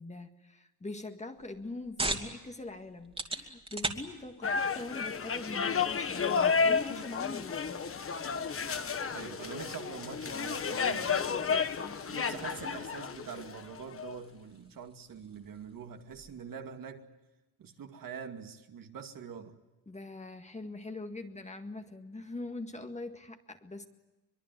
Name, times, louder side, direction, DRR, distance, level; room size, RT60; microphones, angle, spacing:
voice 1, 0.0-7.8 11.8-12.0 19.9-23.9, left 2 dB, 20° left, 1.9 m, -43 dB
soda can open, 1.3-16.5, right 2 dB, 15° right, 2.7 m, -44 dB
sound 1, 4.4-14.1, left 5 dB, 35° left, 1.4 m, -32 dB
voice 2, 9.1-11.5 12.1-17.1 17.6-19.6, right 7 dB, 60° right, 2.4 m, -44 dB
24.0 x 22.5 x 9.3 m
cardioid pair, 115°, 37 cm